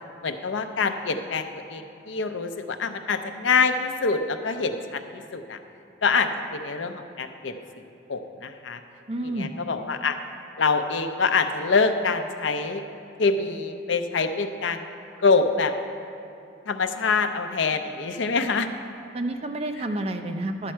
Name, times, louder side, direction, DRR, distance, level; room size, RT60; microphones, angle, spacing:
voice 1, 0.2-5.6 6.0-7.5 8.1-8.8 9.4-10.2 10.6-12.8 13.2-14.8 15.2-15.7 16.7-18.7, left 4 dB, 80° left, 8 dB, 0.6 m, -25 dB
voice 2, 9.1-9.5 19.1-20.7, right 1 dB, 30° right, 6 dB, 0.5 m, -29 dB
11.5 x 7.4 x 4.5 m, 2.8 s
head